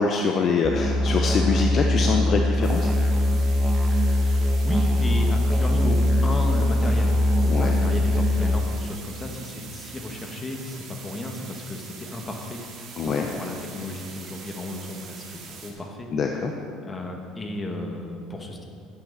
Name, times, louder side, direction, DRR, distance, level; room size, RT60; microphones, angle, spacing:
voice 1, 0.0-2.9 7.5-7.8 13.0-13.3 16.1-16.5, left 5 dB, 45° left, 3 dB, 0.8 m, -24 dB
Musical instrument, 0.6-8.6, left 1 dB, ahead, 1.2 m, -21 dB
sound 1, 2.6-15.7, right 5 dB, 55° right, 2.6 m, -43 dB
voice 2, 3.9-7.1 7.4-12.6 13.1-16.1 16.8-18.6, left 2 dB, 25° left, 2 dB, 1.8 m, -34 dB
14.5 x 8.8 x 4.2 m, 2.4 s
supercardioid pair, 90°, 0 cm